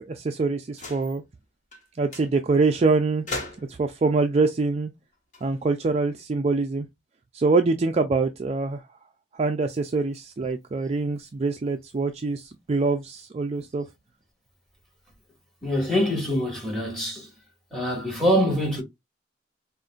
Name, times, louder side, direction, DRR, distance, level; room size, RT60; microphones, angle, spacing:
voice 1, 0.1-1.2 2.0-3.2 3.7-4.9 5.4-6.9 7.3-8.8 9.3-13.8, right 3 dB, 35° right, 0.4 m, -24 dB
sound 1, 0.7-1.2 1.7-1.9 2.1-2.3 3.3-3.9 5.1-6.2, left 2 dB, 40° left, 1.6 m, -38 dB
voice 2, 15.6-17.3 17.7-18.8, equal, ahead, 2.0 m, -24 dB
5.1 x 2.5 x 2.4 m
head